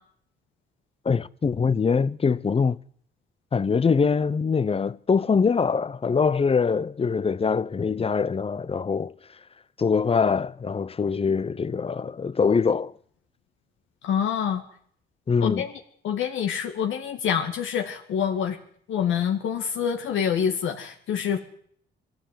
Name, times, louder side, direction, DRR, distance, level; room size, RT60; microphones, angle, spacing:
voice 1, 1.0-2.8 3.5-9.1 9.8-12.9 15.3-15.7, left 5 dB, 30° left, 0.8 m, -23 dB
voice 2, 14.0-14.6 15.4-15.7 16.0-18.6 18.9-21.4, left 8 dB, 80° left, 2.3 m, -26 dB
22.0 x 14.5 x 9.4 m
cardioid pair, 90°, 20 cm